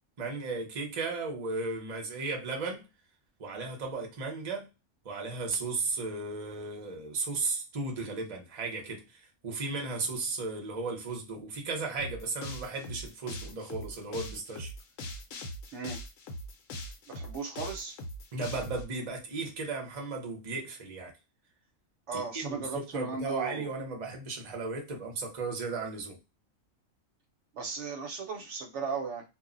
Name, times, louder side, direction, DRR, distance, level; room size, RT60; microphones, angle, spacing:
voice 1, 0.2-2.9 3.4-4.7 5.0-14.7 18.3-21.1 22.1-26.2, right 3 dB, 35° right, 0.6 m, -35 dB
sound 1, 12.0-18.8, left 1 dB, 80° left, 1.0 m, -41 dB
voice 2, 17.1-18.0 22.1-23.7 27.5-29.2, right 4 dB, 65° right, 0.9 m, -36 dB
2.3 x 2.0 x 3.7 m
omnidirectional pair, 1.4 m